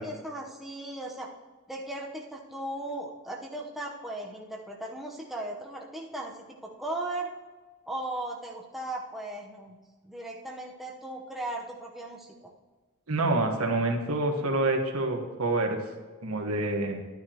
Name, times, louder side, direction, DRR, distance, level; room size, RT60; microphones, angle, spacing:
voice 1, 0.0-1.3 1.7-7.3 7.9-9.8 10.0-12.3, right 1 dB, ahead, -2 dB, 0.9 m, -37 dB
voice 2, 13.1-15.8 16.2-17.0, right 2 dB, 75° right, 3 dB, 1.4 m, -27 dB
12.0 x 9.6 x 3.0 m, 1.3 s
head